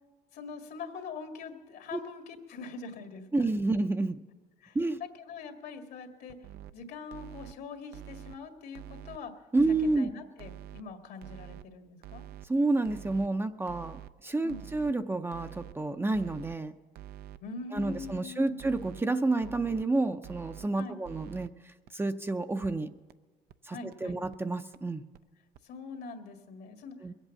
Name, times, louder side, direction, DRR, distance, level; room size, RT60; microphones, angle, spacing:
voice 1, 0.3-3.5 4.6-6.4 6.7-9.3 10.0-12.2 14.4-14.7 17.4-18.6 20.7-21.0 23.7-24.2 25.6-27.0, left 4 dB, 70° left, 5 dB, 1.9 m, -43 dB
voice 2, 3.3-4.2 4.7-5.0 9.5-10.1 12.5-14.0 14.2-16.7 17.7-21.5 21.9-22.9 23.7-25.0 27.0-27.1, right 2 dB, 15° right, 8 dB, 0.6 m, -29 dB
sound 1, 6.3-6.7 7.1-7.5 7.9-8.3 8.7-9.2 9.6-10.0 10.4-10.8 11.2-11.6 12.0-12.5 12.9-13.3 13.7-14.1 14.5-14.9 15.3-15.7 16.1-16.6 17.0-17.4 17.8-18.2 18.6-19.0 19.4-19.8 20.2-20.7 21.0-21.5 21.9-22.0 22.3-22.4 22.7-22.8 23.1-23.2 23.5-23.6 23.9-24.0 24.3-24.4 24.7-24.8 25.1-25.2 25.5-25.6, right 11 dB, 70° right, 0.5 m, -46 dB
21.5 x 8.2 x 7.0 m, 1.4 s
cardioid pair, 110°, 17 cm